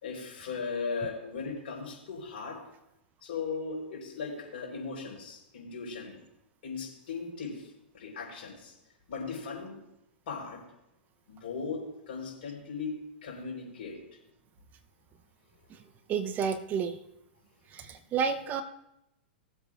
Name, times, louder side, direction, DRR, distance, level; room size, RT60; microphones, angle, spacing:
voice 1, 0.0-2.6 3.2-6.2 6.6-8.7 9.1-9.8 10.3-10.6 11.3-12.9 13.2-14.0 17.8-17.9, left 5 dB, 65° left, -2 dB, 4.4 m, -38 dB
voice 2, 16.1-17.0 17.7-18.6, right 6 dB, 30° right, 9 dB, 0.7 m, -30 dB
19.5 x 8.0 x 2.5 m, 0.84 s
hypercardioid pair, 115°, 6 cm